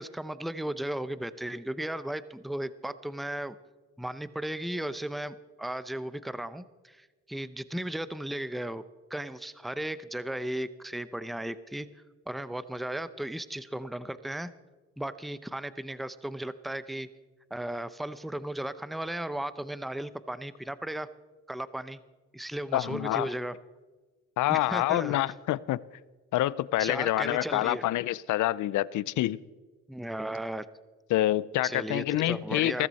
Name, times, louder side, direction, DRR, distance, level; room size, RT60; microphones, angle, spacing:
voice 1, 0.0-3.6 4.0-8.8 9.1-11.9 12.3-14.5 15.0-17.1 17.5-21.1 21.5-22.0 22.3-23.5 24.5-25.2 26.8-27.8 29.9-30.7 31.6-32.9, right 1 dB, ahead, 0.7 m, -35 dB
voice 2, 22.7-23.3 24.4-25.8 26.3-29.4 31.1-32.9, left 15 dB, 80° left, 0.6 m, -27 dB
16.5 x 14.5 x 4.2 m
cardioid pair, 90°, 30 cm